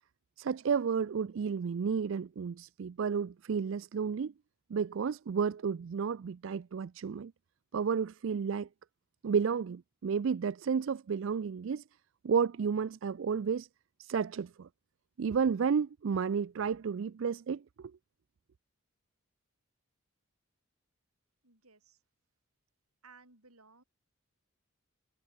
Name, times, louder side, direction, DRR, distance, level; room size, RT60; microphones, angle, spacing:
voice 1, 0.4-4.3 4.7-7.3 7.7-8.7 9.2-11.8 12.2-13.7 14.0-14.7 15.2-17.9, right 6 dB, 60° right, 0.4 m, -32 dB
voice 2, 21.4-22.0 23.0-23.8, right 4 dB, 85° right, 7.3 m, -59 dB
head